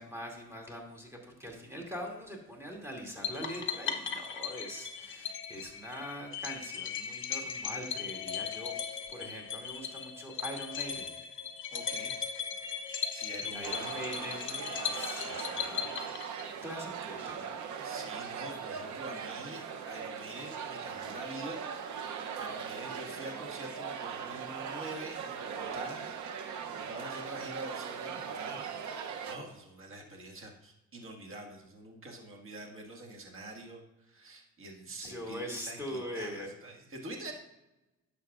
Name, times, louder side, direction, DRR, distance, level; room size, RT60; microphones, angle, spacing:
voice 1, 0.0-11.2 13.4-15.9 16.6-17.6 35.0-36.5, equal, 10° right, -1 dB, 2.4 m, -42 dB
sound 1, 3.2-16.7, left 7 dB, 40° left, 0.9 m, -38 dB
voice 2, 11.7-12.2 13.1-13.9 17.8-22.0 22.4-37.3, right 2 dB, 45° right, 1 dB, 1.8 m, -46 dB
sound 2, 13.6-29.4, right 7 dB, 75° right, 0.8 m, -40 dB
11.0 x 7.0 x 2.5 m, 0.96 s
cardioid pair, 90°, 30 cm